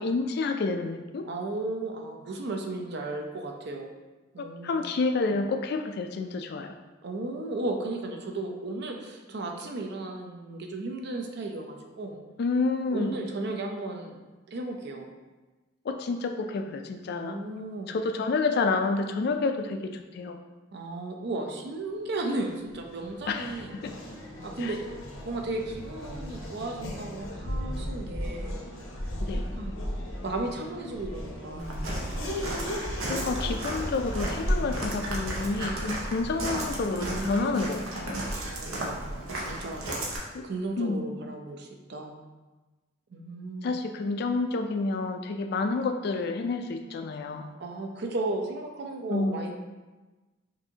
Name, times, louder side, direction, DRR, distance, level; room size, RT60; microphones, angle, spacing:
voice 1, 0.0-1.3 4.4-6.7 12.4-13.2 15.9-17.4 17.9-20.4 23.3-23.6 23.8-23.9 24.6-24.7 29.2-29.4 33.1-38.2 40.1-40.5 40.8-41.0 43.6-47.5 49.1-49.5, left 3 dB, 50° left, 6 dB, 0.3 m, -29 dB
voice 2, 1.2-3.9 4.3-4.9 7.0-12.2 12.9-14.2 14.5-15.1 17.2-17.9 20.7-23.7 24.4-24.8 25.2-28.6 29.3-29.8 30.2-31.8 37.0-37.7 38.3-39.8 40.1-42.2 43.1-43.7 47.6-49.5, right 2 dB, 55° right, 3 dB, 0.5 m, -35 dB
Race car auto racing / Accelerating revving vroom, 22.3-38.0, equal, 80° left, 0.8 m, -37 dB
Walk footsteps, 31.6-40.2, right 1 dB, 80° right, 0.8 m, -33 dB
5.3 x 2.6 x 2.8 m, 1.2 s
head